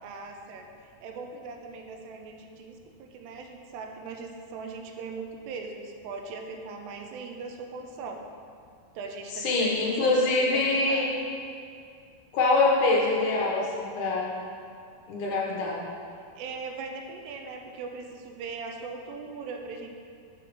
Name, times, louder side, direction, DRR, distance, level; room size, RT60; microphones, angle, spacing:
voice 1, 0.0-8.2 9.0-11.0 16.4-19.9, right 4 dB, 90° right, 3 dB, 2.7 m, -40 dB
voice 2, 9.4-11.2 12.3-14.3 15.1-15.8, left 3 dB, 80° left, -3 dB, 1.8 m, -24 dB
6.3 x 5.0 x 6.0 m, 2.4 s
omnidirectional pair, 4.7 m